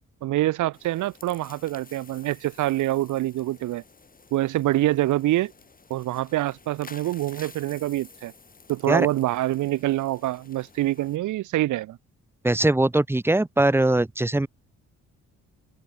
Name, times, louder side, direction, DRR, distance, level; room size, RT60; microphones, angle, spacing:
voice 1, 0.2-3.8 4.3-5.5 5.9-8.3 8.7-12.0, right 15 dB, 80° right, 1.0 m, -25 dB
sound 1, 0.7-11.2, left 4 dB, 30° left, 4.7 m, -51 dB
voice 2, 12.4-14.5, right 2 dB, 10° right, 0.8 m, -21 dB
cardioid pair, 90°, 30 cm